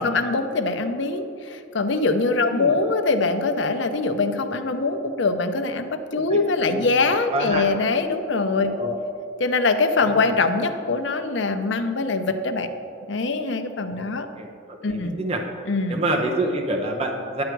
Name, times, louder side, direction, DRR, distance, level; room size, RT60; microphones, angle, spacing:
voice 1, 0.0-8.7 9.4-12.7 13.1-14.3 14.8-15.1 15.7-16.0, left 3 dB, 70° left, 7 dB, 0.7 m, -23 dB
voice 2, 2.4-2.8 6.3-7.0 7.3-7.7 8.7-9.0 10.1-10.3 13.9-14.1 14.4-14.5 14.9-15.4 15.9-17.4, right 1 dB, 30° right, 2 dB, 0.8 m, -27 dB
10.5 x 7.9 x 4.6 m, 2.7 s
head